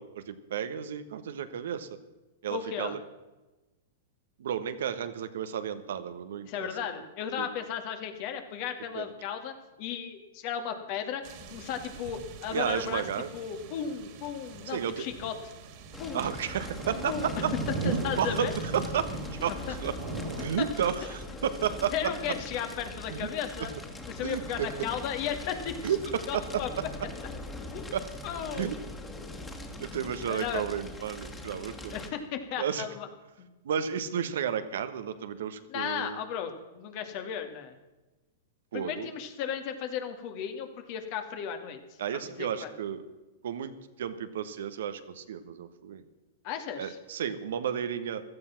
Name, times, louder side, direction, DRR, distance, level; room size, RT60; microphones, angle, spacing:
voice 1, 0.0-1.9 2.4-3.0 4.4-6.7 7.4-7.5 8.9-9.1 12.5-13.3 14.7-15.0 16.1-17.5 17.8-19.9 20.4-21.9 23.1-23.2 24.2-24.7 25.8-26.5 27.9-28.0 28.5-28.8 29.8-31.9 32.6-32.9 33.6-36.2 38.7-39.1 42.0-43.0 43.4-43.7 44.0-46.0 46.8-48.2, right 8 dB, 70° right, 10 dB, 1.3 m, -32 dB
voice 2, 2.5-3.0 6.4-13.1 13.3-15.4 16.0-16.3 17.0-17.4 17.8-18.5 19.7-19.8 20.6-20.7 21.9-23.7 24.1-26.0 26.3-26.7 27.7-27.9 28.2-28.8 30.3-30.6 31.9-33.1 33.4-33.5 35.7-37.8 38.7-42.7 46.4-47.0, left 8 dB, 50° left, 6 dB, 2.4 m, -35 dB
sound 1, 11.2-20.5, right 2 dB, 50° right, 2.6 m, -39 dB
Fire, 15.9-32.1, left 2 dB, 15° left, 2.4 m, -42 dB
16.0 x 13.0 x 5.9 m, 1.1 s
hypercardioid pair, 110°, 0 cm